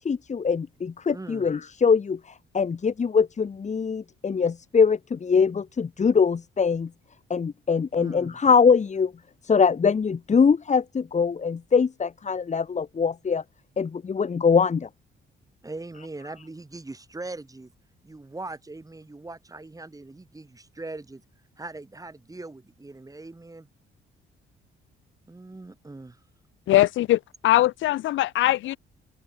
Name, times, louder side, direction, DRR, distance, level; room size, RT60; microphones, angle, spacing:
voice 1, 0.0-6.9 7.3-9.1 9.4-13.4 13.8-14.9, left 5 dB, 35° left, 2.1 m, -23 dB
voice 2, 1.1-1.5 8.0-8.4 15.6-17.7 18.0-21.2 21.6-23.7 25.3-26.2, right 2 dB, 15° right, 7.8 m, -40 dB
voice 3, 26.7-28.8, left 15 dB, 75° left, 0.7 m, -21 dB
open air
cardioid pair, 90°, 20 cm